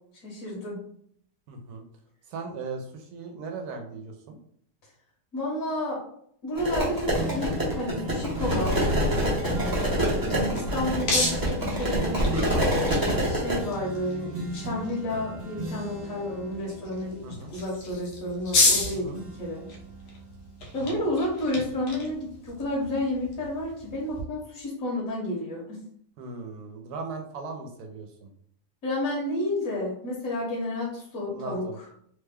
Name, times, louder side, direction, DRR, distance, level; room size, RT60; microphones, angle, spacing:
voice 1, 0.2-0.8 5.3-6.0 6.4-8.9 10.2-12.2 13.2-19.6 20.7-25.8 28.8-31.6, left 1 dB, 60° left, -5 dB, 1.3 m, -31 dB
voice 2, 1.5-1.8 2.3-4.4 9.8-10.1 17.2-17.5 18.9-19.2 20.7-21.0 26.2-28.3 31.3-31.8, right 4 dB, 75° right, 4 dB, 1.1 m, -38 dB
sound 1, 6.5-13.6, equal, 20° right, 0.6 m, -26 dB
sound 2, 7.1-18.8 19.1-21.0 21.5-21.6, right 2 dB, 35° right, 1.1 m, -38 dB
sound 3, 9.8-24.2, left 2 dB, 80° left, 1.3 m, -33 dB
3.2 x 2.2 x 3.4 m, 0.65 s
omnidirectional pair, 1.8 m